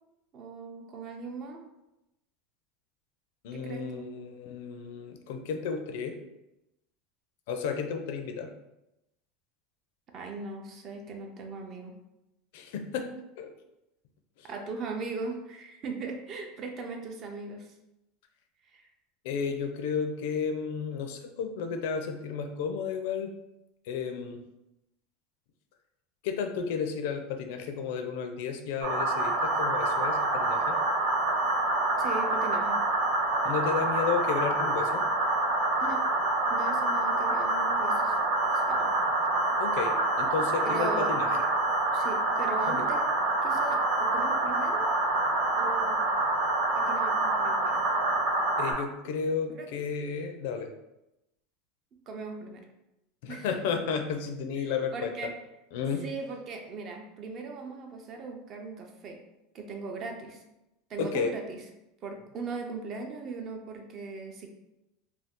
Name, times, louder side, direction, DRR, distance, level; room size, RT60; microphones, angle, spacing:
voice 1, 0.3-1.7 3.5-4.1 10.1-11.9 14.4-17.7 18.7-18.9 32.0-32.8 35.8-36.0 36.5-38.1 38.5-38.9 40.6-41.1 41.9-43.0 43.4-44.9 45.6-46.0 46.8-47.8 49.5-49.7 52.1-52.6 53.3-53.5 54.6-55.3 56.0-59.2 59.5-60.4 60.9-61.6 62.0-64.5, right 3 dB, 35° right, 3 dB, 0.5 m, -39 dB
voice 2, 3.4-6.2 7.5-8.5 12.5-13.1 13.4-13.5 14.4-14.5 19.2-23.3 23.8-24.4 26.2-30.8 33.4-35.1 39.6-41.3 42.7-42.9 48.6-50.7 53.2-55.1 55.7-56.1 61.0-61.3, left 6 dB, 70° left, 5 dB, 0.4 m, -32 dB
sound 1, 28.8-48.7, right 2 dB, 70° right, 0.8 m, -27 dB
2.6 x 2.3 x 3.5 m, 0.92 s
supercardioid pair, 140°, 0 cm